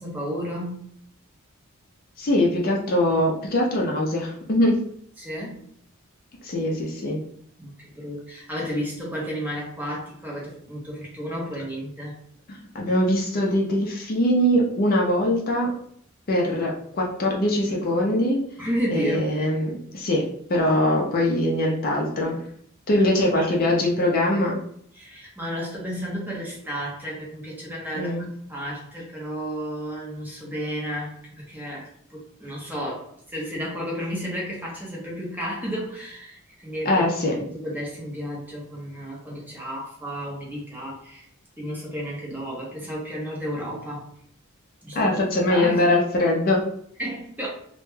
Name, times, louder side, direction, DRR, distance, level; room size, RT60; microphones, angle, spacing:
voice 1, 0.0-0.8 5.2-5.6 7.6-12.1 18.6-19.3 23.0-23.8 24.9-28.2 28.5-37.1 37.5-41.3 41.6-44.1 44.8-45.2 45.5-45.8 47.0-47.5, equal, 10° right, -4 dB, 0.6 m, -32 dB
voice 2, 2.2-4.7 6.4-7.2 12.5-15.7 16.3-18.4 18.9-22.4 22.9-24.6 27.9-28.3 36.9-37.3 44.9-46.6, left 1 dB, 45° left, -1 dB, 0.4 m, -22 dB
2.1 x 2.1 x 3.1 m, 0.66 s
head